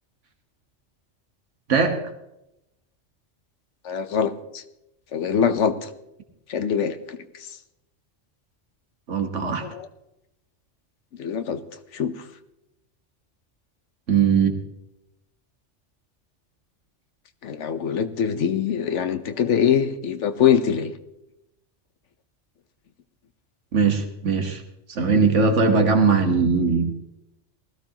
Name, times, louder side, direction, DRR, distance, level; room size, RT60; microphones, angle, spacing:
voice 1, 3.8-4.6 5.1-5.9 6.5-7.2 9.4-9.9 11.2-11.6 11.9-12.1 17.4-20.9, left 8 dB, 80° left, 10 dB, 1.2 m, -23 dB
voice 2, 9.1-9.7 14.1-14.5 23.7-24.6 24.9-26.9, right 5 dB, 80° right, 5 dB, 1.7 m, -20 dB
19.5 x 14.5 x 2.9 m, 0.87 s
omnidirectional pair, 1.2 m